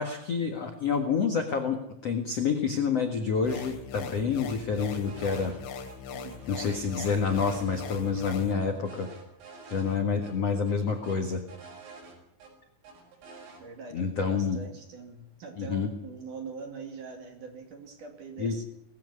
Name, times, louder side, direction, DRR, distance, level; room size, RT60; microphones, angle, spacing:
voice 1, 0.0-1.8 2.0-5.5 6.5-9.1 9.7-11.4 13.9-14.6 15.6-15.9 18.4-18.5, left 5 dB, 65° left, 5 dB, 1.5 m, -28 dB
sound 1, 3.4-8.5, left 6 dB, 85° left, 4.6 m, -40 dB
sound 2, 5.0-5.6 5.9-6.0 6.3-8.1 8.5-10.0 10.2-10.3 10.7-12.5 12.8-13.6, right 4 dB, 85° right, 7.8 m, -48 dB
voice 2, 6.1-6.8 13.6-18.6, right 5 dB, 50° right, 5 dB, 3.3 m, -43 dB
19.5 x 15.0 x 9.7 m, 0.75 s
omnidirectional pair, 5.7 m